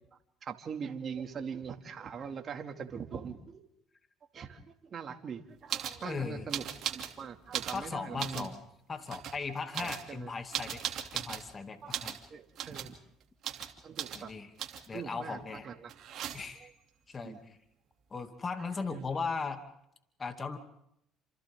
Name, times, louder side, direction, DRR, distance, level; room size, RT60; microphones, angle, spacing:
voice 1, 0.4-3.6 4.3-8.5 9.8-10.3 11.8-12.0 12.3-12.9 13.8-14.3 14.9-15.4 15.6-16.3 16.6-16.7 17.2-17.4 18.6-18.7, right 6 dB, 45° right, 5 dB, 2.5 m, -42 dB
sound 1, 5.7-6.0 6.5-7.1 7.4-8.5 9.1-9.4 9.7-11.5 11.9-12.2 12.5-12.9 13.4-13.7 14.0-14.2 14.6-15.0 15.9-16.6 18.4-18.5 18.7-19.3, right 9 dB, 60° right, 2.9 m, -38 dB
voice 2, 6.0-6.5 7.7-8.6 8.9-10.8 11.1-12.2 14.1-14.5 14.9-15.6 16.3-16.7 17.1-17.6 18.1-19.6 20.2-20.6, left 4 dB, 30° left, 6 dB, 2.6 m, -37 dB
29.5 x 27.5 x 3.8 m, 0.76 s
supercardioid pair, 85°, 0 cm